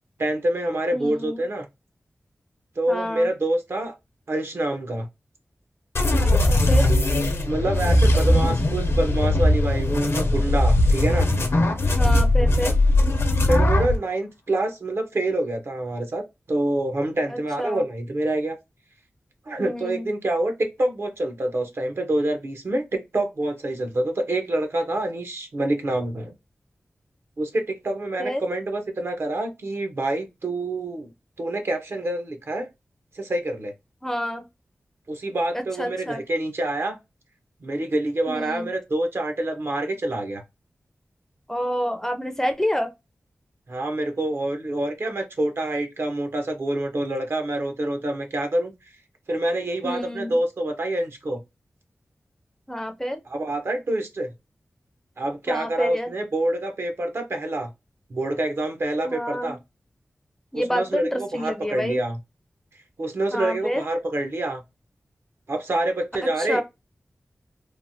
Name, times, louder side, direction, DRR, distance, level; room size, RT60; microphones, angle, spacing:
voice 1, 0.2-1.7 2.8-3.9 4.3-5.1 6.6-7.1 7.4-11.3 13.5-18.6 19.5-26.3 27.4-31.1 31.4-32.7 33.1-33.7 35.1-37.0 37.6-40.4 43.7-48.7 49.3-51.4 53.3-54.3 55.2-57.7 58.1-59.6 60.5-62.2 63.0-64.6 65.5-66.6, right 1 dB, 60° right, 0.7 m, -26 dB
voice 2, 0.9-1.4 2.9-3.3 6.2-6.9 11.8-12.7 17.3-17.8 19.6-20.1 28.2-28.4 34.0-34.4 35.5-36.2 38.3-38.7 41.5-42.9 49.8-50.4 52.7-53.2 55.5-56.1 59.0-59.5 60.5-62.0 63.3-63.8 66.2-66.6, equal, 10° left, 0.4 m, -28 dB
sound 1, 5.9-14.0, left 1 dB, 65° left, 0.6 m, -19 dB
3.0 x 2.1 x 2.6 m
wide cardioid pair, 80°, 5 cm